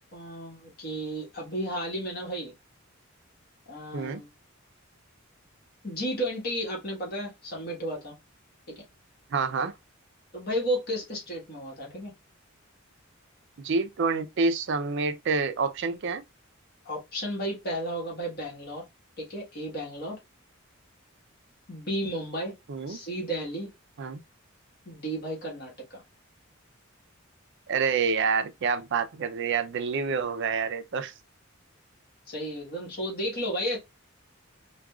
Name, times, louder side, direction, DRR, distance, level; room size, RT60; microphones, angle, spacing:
voice 1, 0.1-2.5 3.7-4.3 5.8-8.1 8.7-8.8 10.3-12.1 16.8-18.8 19.2-20.2 21.7-22.5 22.9-23.7 24.8-26.0 32.3-33.8, equal, 50° left, 1.4 m, -33 dB
voice 2, 9.3-9.7 13.6-16.2 22.7-23.0 24.0-24.2 27.7-31.1, right 5 dB, 55° right, 0.4 m, -27 dB
4.7 x 2.3 x 2.3 m
head